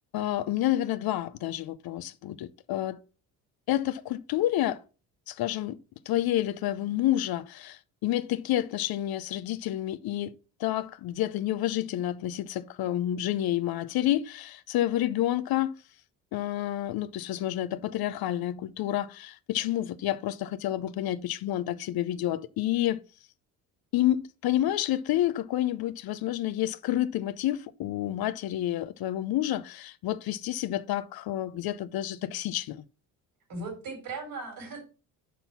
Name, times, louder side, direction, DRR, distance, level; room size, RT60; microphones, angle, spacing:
voice 1, 0.1-3.0 3.7-4.8 5.3-5.8 6.1-10.3 10.6-15.7 16.3-23.0 23.9-32.8, left 13 dB, 60° left, 0.7 m, -29 dB
voice 2, 33.5-34.8, right 3 dB, 55° right, 4.0 m, -37 dB
6.1 x 5.3 x 5.8 m
supercardioid pair, 65°, 41 cm